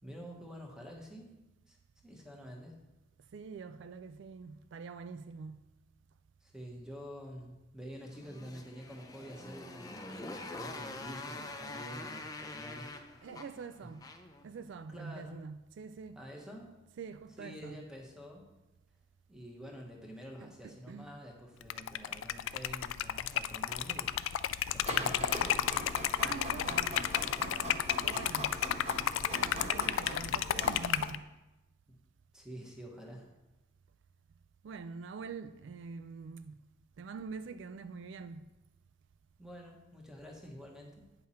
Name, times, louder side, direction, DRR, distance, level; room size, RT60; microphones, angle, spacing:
voice 1, 0.0-1.3 1.7-1.8 2.0-2.8 6.4-12.9 13.8-13.9 14.9-15.4 16.1-16.7 17.4-18.5 19.3-24.1 24.7-25.7 32.3-33.3 39.4-41.1, equal, 5° right, 1.2 m, -48 dB
voice 2, 3.3-5.6 13.2-14.0 14.4-16.2 17.0-17.8 20.4-21.2 26.2-27.0 27.4-28.5 29.3-31.2 34.6-36.6 37.0-38.4, right 5 dB, 70° right, 0.3 m, -45 dB
Motorcycle, 8.1-14.4, left 2 dB, 20° left, 0.5 m, -45 dB
Liquid, 21.6-31.2, left 10 dB, 85° left, 0.3 m, -32 dB
Printer, 24.9-31.1, equal, 30° right, 1.6 m, -41 dB
8.7 x 5.7 x 4.3 m
head